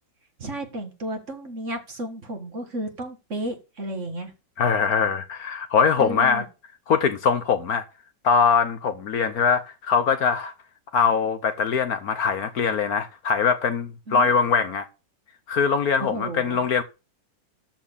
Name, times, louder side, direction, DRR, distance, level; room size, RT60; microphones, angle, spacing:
voice 1, 0.4-4.3 6.0-6.4 14.1-14.3 16.0-16.6, right 1 dB, 40° right, 2.1 m, -32 dB
voice 2, 4.6-6.4 6.9-7.8 8.2-10.5 10.9-14.9 15.5-16.8, left 6 dB, 60° left, 1.2 m, -22 dB
13.0 x 4.5 x 7.1 m
omnidirectional pair, 2.0 m